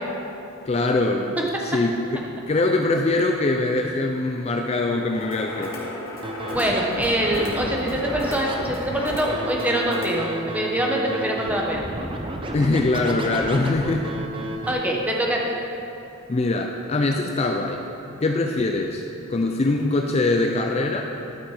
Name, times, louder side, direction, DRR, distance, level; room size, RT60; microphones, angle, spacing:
voice 1, 0.7-5.9 12.5-14.1 16.3-17.8 18.2-19.0 19.3-21.0, left 2 dB, 30° left, 3 dB, 0.4 m, -23 dB
sound 1, 5.1-10.2, left 2 dB, 65° left, 1.9 m, -34 dB
Scratching (performance technique), 6.2-14.7, right 2 dB, 25° right, 0.6 m, -32 dB
voice 2, 6.5-11.8 14.7-15.4, right 1 dB, 5° right, -2 dB, 1.0 m, -24 dB
11.0 x 6.3 x 4.8 m, 2.8 s
head